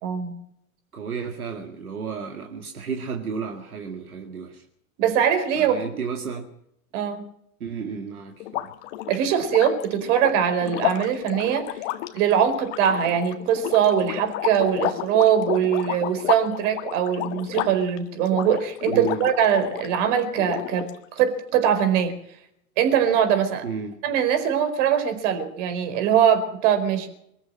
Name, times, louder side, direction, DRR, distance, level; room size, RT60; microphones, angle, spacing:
voice 1, 0.0-0.4 5.0-5.9 6.9-7.2 9.1-11.8 12.1-22.1 22.8-23.6 24.0-27.1, right 9 dB, 55° right, 8 dB, 4.7 m, -22 dB
voice 2, 0.9-4.6 5.5-6.5 7.6-8.7 18.9-19.3 23.6-24.0, right 6 dB, 85° right, 3 dB, 2.4 m, -32 dB
sound 1, 8.4-20.0 20.4-21.2, left 15 dB, 55° left, 1.8 m, -31 dB
24.5 x 14.0 x 7.7 m, 0.73 s
hypercardioid pair, 95°, 43 cm